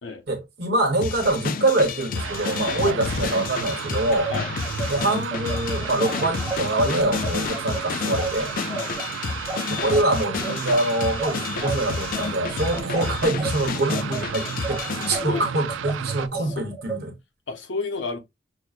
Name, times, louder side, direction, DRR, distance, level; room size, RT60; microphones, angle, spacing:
voice 1, 0.3-4.3 4.9-8.5 9.7-17.1, right 2 dB, 60° right, 1.2 m, -24 dB
sound 1, 1.0-15.2, left 5 dB, 50° left, 0.3 m, -30 dB
sound 2, 2.1-16.3, right 8 dB, 85° right, 0.4 m, -33 dB
sound 3, 4.3-13.5 13.9-17.0, right 3 dB, ahead, 0.7 m, -33 dB
voice 2, 17.5-18.2, left 4 dB, 75° left, 0.8 m, -31 dB
6.2 x 2.2 x 2.4 m
head